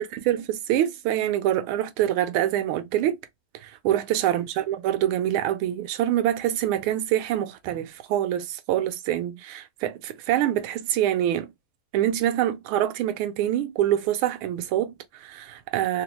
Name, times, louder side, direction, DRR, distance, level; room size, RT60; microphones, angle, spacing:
voice 1, 0.0-3.2 3.6-11.5 11.9-16.0, right 12 dB, 90° right, 1.4 m, -25 dB
3.6 x 2.0 x 2.9 m
omnidirectional pair, 2.2 m